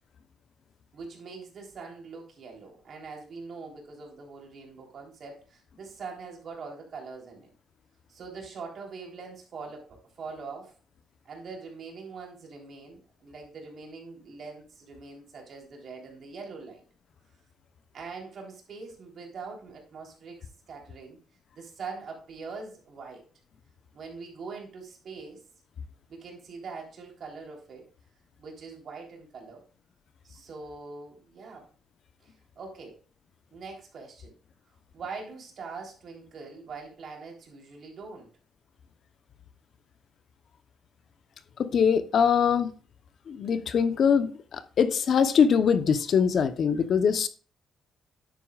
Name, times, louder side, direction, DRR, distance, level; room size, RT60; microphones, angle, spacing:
voice 1, 0.9-7.5 8.1-10.7 11.3-16.8 17.9-21.2 21.5-23.2 23.9-25.4 26.1-27.9 28.4-29.6 30.2-31.7 32.2-33.0 33.5-34.3 34.9-38.3, right 4 dB, 60° right, 3.6 m, -43 dB
voice 2, 41.6-42.7 43.3-47.3, left 7 dB, 60° left, 0.9 m, -23 dB
10.0 x 8.4 x 2.4 m
cardioid pair, 90°, 0 cm